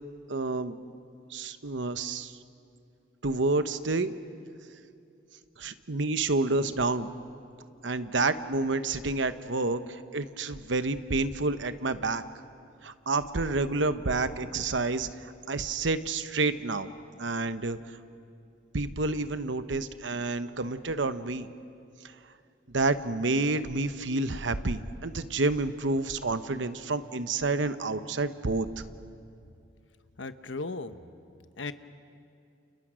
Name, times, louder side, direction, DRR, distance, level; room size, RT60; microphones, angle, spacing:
voice 1, 0.3-0.8 1.3-2.4 3.2-4.1 5.6-7.1 7.8-12.2 12.8-15.1 15.5-16.9 17.2-17.8 18.7-21.5 22.7-28.7, right 3 dB, 75° right, 11 dB, 1.0 m, -29 dB
voice 2, 30.2-31.0 31.6-31.7, left 3 dB, 75° left, 11 dB, 1.0 m, -36 dB
30.0 x 29.0 x 6.3 m, 2.5 s
head